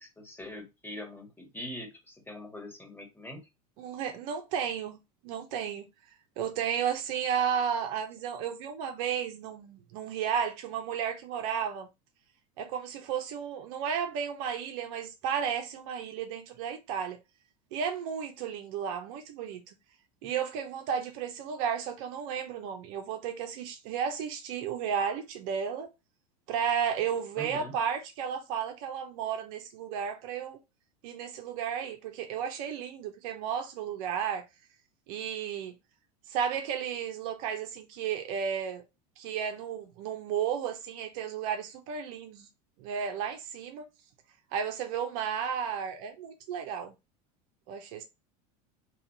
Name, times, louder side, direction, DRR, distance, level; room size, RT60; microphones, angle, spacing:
voice 1, 0.0-3.5 20.2-20.3 27.4-27.7, left 1 dB, 10° left, 1.8 m, -43 dB
voice 2, 3.8-5.0 5.2-5.9 6.4-11.9 12.6-17.2 17.7-19.7 20.2-25.9 26.5-30.6 31.0-34.4 35.1-35.7 36.3-38.8 39.2-42.5 42.8-43.8 44.5-46.9 47.7-48.0, right 8 dB, 65° right, 1.0 m, -33 dB
3.2 x 2.9 x 4.1 m
supercardioid pair, 105°, 20 cm